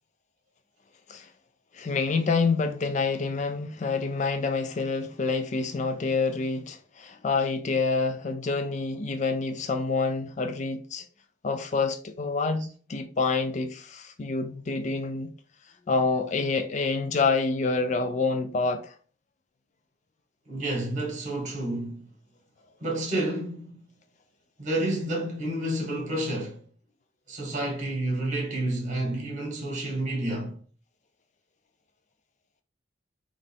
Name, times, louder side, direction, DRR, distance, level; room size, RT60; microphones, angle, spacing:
voice 1, 1.7-11.1 11.4-15.3 15.9-18.9, left 4 dB, 40° left, 0.4 m, -27 dB
voice 2, 20.5-22.1 22.8-23.8 24.6-26.6 27.3-30.5, right 1 dB, 40° right, 1.8 m, -30 dB
3.9 x 3.2 x 3.6 m
head